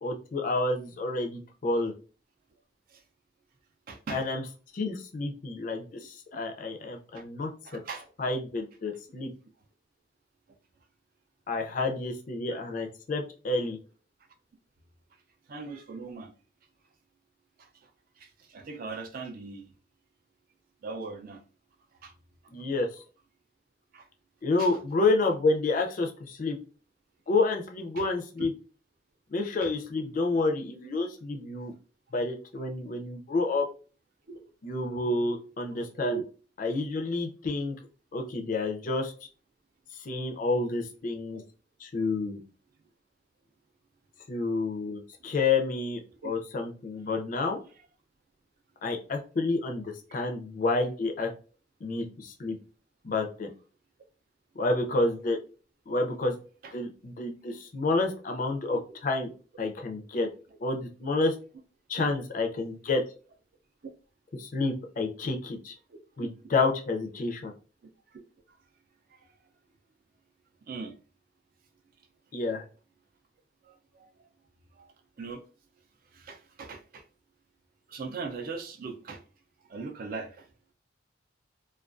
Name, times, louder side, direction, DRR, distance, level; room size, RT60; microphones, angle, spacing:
voice 1, 0.0-1.9 4.1-4.4 4.7-7.8 8.2-9.3 11.5-13.8 22.5-22.9 24.4-26.6 27.3-28.5 29.3-31.7 32.1-33.7 34.6-36.2 36.6-37.7 38.1-39.1 40.0-41.4 41.8-42.4 44.3-47.6 48.8-51.3 51.8-52.6 53.0-53.5 54.6-55.4 55.9-56.4 56.7-59.3 59.6-60.3 60.6-61.3 61.9-63.0 64.3-65.8 66.2-67.5 72.3-72.6, left 3 dB, 45° left, 0.4 m, -29 dB
voice 2, 3.9-4.2 7.1-7.2 7.7-8.1 15.5-16.3 18.2-19.6 20.8-21.4 22.0-22.1 23.9-24.0 24.6-24.7 28.0-28.1 28.4-28.5 29.6-29.7 34.3-34.4 36.0-36.2 46.2-46.3 50.1-50.3 58.7-58.8 62.0-62.1 65.9-66.0 69.1-69.2 70.7-70.9 73.7-74.1 74.8-74.9 75.2-75.4 76.1-77.0 77.9-79.2 79.7-80.4, right 4 dB, 50° right, 0.4 m, -39 dB
2.3 x 2.3 x 2.4 m
head